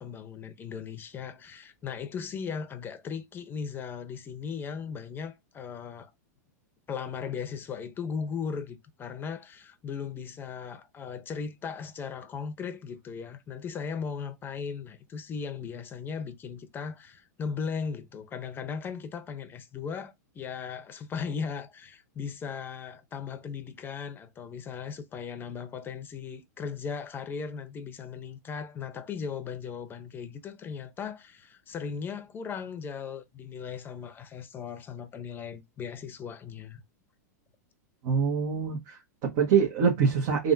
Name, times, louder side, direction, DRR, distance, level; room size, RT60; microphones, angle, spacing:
voice 1, 0.0-6.1 6.9-36.8, left 6 dB, 20° left, 0.7 m, -37 dB
voice 2, 38.0-40.5, right 6 dB, 50° right, 1.2 m, -25 dB
3.4 x 2.5 x 2.6 m
hypercardioid pair, 120°, 10 cm